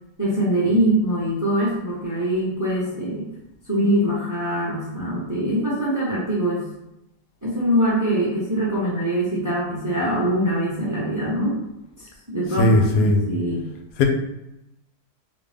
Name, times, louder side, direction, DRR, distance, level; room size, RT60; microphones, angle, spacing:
voice 1, 0.2-3.2 3.7-6.7 7.4-11.6 12.0-13.7, right 1 dB, 20° right, -7 dB, 0.5 m, -23 dB
voice 2, 12.6-13.2 14.0-14.1, left 1 dB, 85° left, 3 dB, 1.2 m, -17 dB
3.4 x 2.6 x 3.3 m, 0.88 s
omnidirectional pair, 1.7 m